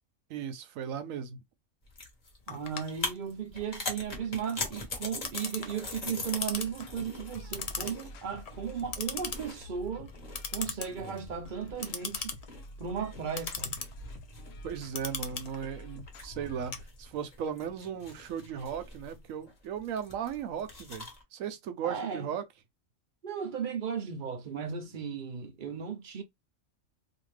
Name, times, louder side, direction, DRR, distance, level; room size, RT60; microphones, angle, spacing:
voice 1, 0.3-1.4 14.6-21.1 21.3-22.4, right 8 dB, 90° right, 1.0 m, -36 dB
sound 1, 1.8-21.2, left 2 dB, 35° left, 1.0 m, -43 dB
Clock, 2.5-17.4, left 5 dB, 55° left, 0.4 m, -40 dB
voice 2, 2.5-10.1 10.5-12.4 12.8-13.9 21.8-22.4 23.2-26.2, right 7 dB, 50° right, 0.6 m, -36 dB
sound 2, 6.1-17.0, left 1 dB, 80° left, 1.0 m, -49 dB
2.7 x 2.6 x 3.1 m
omnidirectional pair, 1.3 m